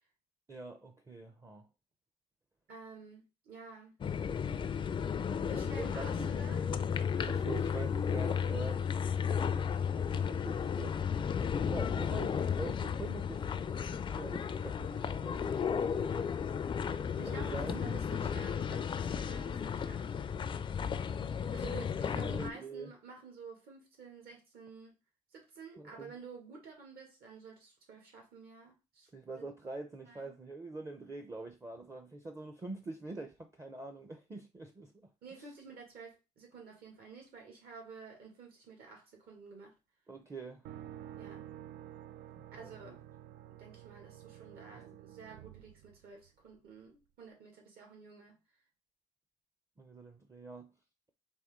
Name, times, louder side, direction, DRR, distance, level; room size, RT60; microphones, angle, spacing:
voice 1, 0.5-1.7 5.8-6.3 7.3-11.0 11.4-16.1 17.3-17.9 21.7-22.9 25.8-26.1 29.1-35.1 40.1-40.7 42.5-43.0 49.8-50.7, right 3 dB, 20° right, 0.6 m, -45 dB
voice 2, 2.7-3.9 5.4-6.7 7.1-7.5 17.2-20.1 21.5-24.9 25.3-29.1 29.4-29.5 30.1-30.3 35.2-39.7 41.2-41.5 42.5-43.0 43.5-48.4, right 4 dB, 65° right, 2.1 m, -51 dB
sound 1, 4.0-22.5, left 7 dB, 30° left, 0.4 m, -34 dB
sound 2, 40.6-46.5, right 11 dB, 80° right, 0.4 m, -50 dB
4.2 x 2.9 x 3.6 m
cardioid pair, 110°, 17 cm